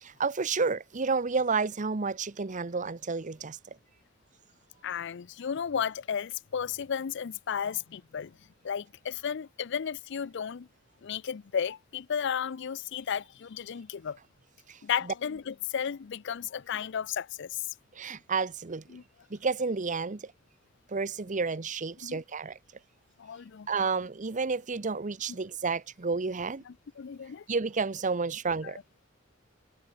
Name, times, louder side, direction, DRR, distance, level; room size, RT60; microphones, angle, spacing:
voice 1, 0.0-3.6 14.7-14.8 18.0-18.8 19.3-20.3 20.9-22.6 23.7-26.6 27.5-28.8, right 4 dB, 40° right, 0.8 m, -30 dB
voice 2, 4.8-8.4 8.6-10.7 11.0-14.2 14.8-17.7 18.9-19.0 22.0-22.2 23.2-23.7 26.7-27.5 28.6-28.7, left 7 dB, 65° left, 0.5 m, -34 dB
head